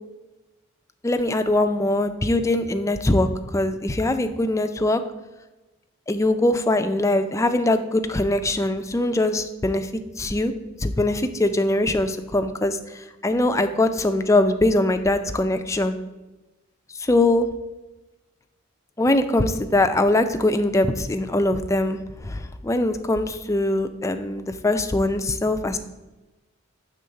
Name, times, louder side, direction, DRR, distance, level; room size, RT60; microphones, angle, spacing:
voice 1, 1.0-5.0 6.1-10.5 10.8-16.0 16.9-17.5 19.0-25.8, left 1 dB, 15° left, 8 dB, 0.4 m, -22 dB
7.0 x 3.7 x 6.4 m, 1.1 s
head